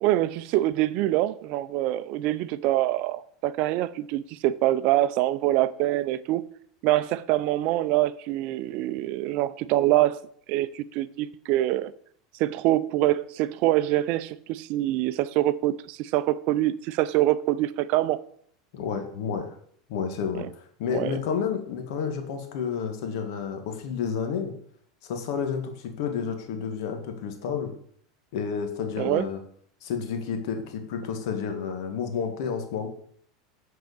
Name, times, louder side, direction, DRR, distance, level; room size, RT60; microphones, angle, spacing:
voice 1, 0.0-6.4 6.8-10.2 10.5-11.9 12.4-18.2 20.4-20.5 20.9-21.2 29.0-29.3, right 15 dB, 60° right, 0.5 m, -25 dB
voice 2, 18.7-19.5 19.9-24.5 25.0-27.7 28.3-29.4 29.8-32.9, left 6 dB, 70° left, 1.6 m, -30 dB
6.8 x 4.7 x 6.5 m
supercardioid pair, 105°, 2 cm